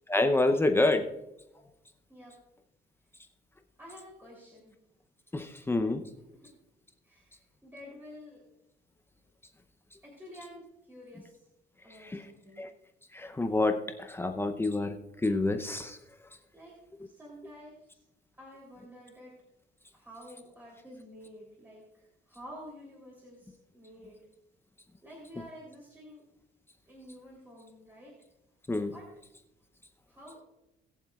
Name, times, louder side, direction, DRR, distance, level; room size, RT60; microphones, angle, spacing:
voice 1, 0.1-1.0 5.3-6.0 12.0-12.3 12.6-12.7 13.1-15.0 15.2-16.0 28.7-28.9, left 2 dB, 10° left, 6 dB, 0.7 m, -27 dB
voice 2, 3.8-4.7 5.3-5.4 6.4-6.5 7.0-7.4 7.6-8.4 10.0-11.4 11.8-12.7 16.5-16.7 17.0-18.0 18.4-19.3 19.9-24.2 25.0-26.2 26.9-28.1 28.9-29.1 30.1-30.4, equal, 10° right, -5 dB, 3.5 m, -50 dB
21.0 x 7.3 x 2.4 m, 0.91 s
cardioid pair, 130°, 18 cm